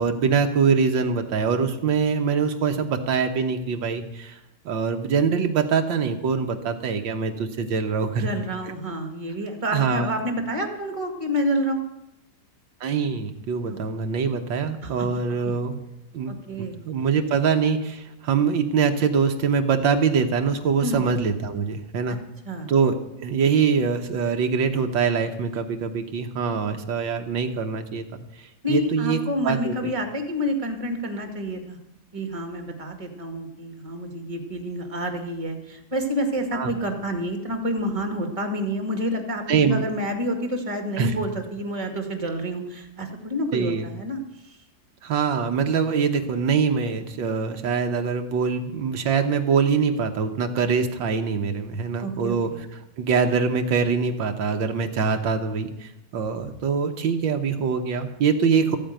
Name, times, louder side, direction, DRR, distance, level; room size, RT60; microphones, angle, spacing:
voice 1, 0.0-4.4 4.7-8.3 9.7-10.1 12.8-15.8 16.1-16.3 16.6-22.2 22.7-29.9 36.5-36.7 39.5-39.8 41.0-41.1 43.5-43.9 45.0-52.5 53.0-58.8, right 6 dB, 80° right, 5 dB, 1.8 m, -24 dB
voice 2, 8.2-11.8 14.8-15.1 16.3-16.8 20.8-21.0 22.5-22.7 28.6-31.8 32.1-44.2 44.4-44.6 52.0-52.6, equal, 15° right, 5 dB, 1.9 m, -28 dB
14.0 x 8.9 x 9.1 m, 0.90 s
omnidirectional pair, 2.1 m